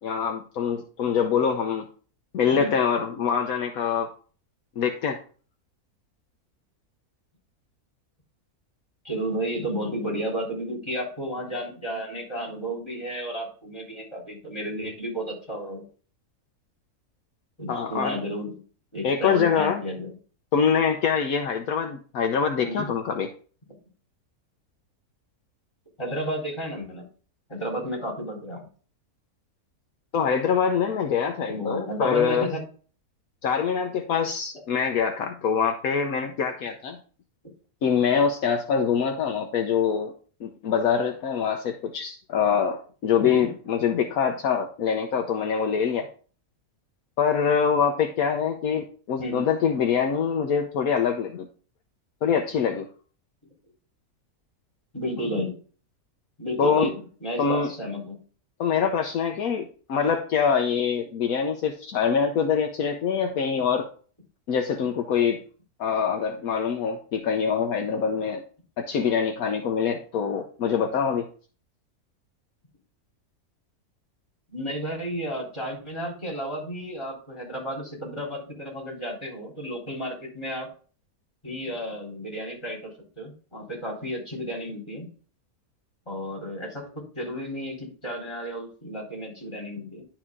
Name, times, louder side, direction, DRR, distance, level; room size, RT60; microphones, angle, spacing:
voice 1, 0.0-1.9 2.3-4.1 4.8-5.2 17.7-18.2 19.0-19.8 20.5-23.3 30.1-32.5 33.4-37.0 37.8-40.1 40.4-46.1 47.2-51.5 52.2-52.9 56.6-56.9 57.4-57.7 58.6-63.9 64.5-65.4 65.8-68.4 68.8-71.3, left 7 dB, 70° left, 4 dB, 1.2 m, -24 dB
voice 2, 9.0-15.9 17.6-18.6 18.9-20.1 22.6-22.9 26.0-27.1 27.5-28.6 31.5-32.6 43.2-43.5 49.2-49.5 54.9-55.6 56.4-58.2 74.5-80.7 81.4-85.1 86.1-90.0, equal, 20° left, -3 dB, 3.9 m, -32 dB
11.0 x 4.8 x 3.7 m, 0.40 s
omnidirectional pair, 1.6 m